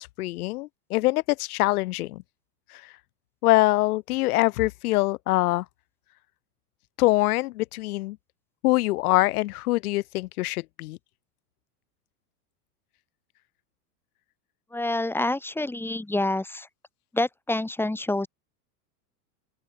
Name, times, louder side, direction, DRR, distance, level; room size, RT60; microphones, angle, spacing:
voice 1, 0.0-2.2 3.4-5.6 7.0-8.2 8.6-11.0, left 19 dB, 75° left, 4.3 m, -24 dB
voice 2, 14.7-16.7 17.1-18.3, left 2 dB, 5° left, 4.7 m, -27 dB
open air
supercardioid pair, 130°, 45 cm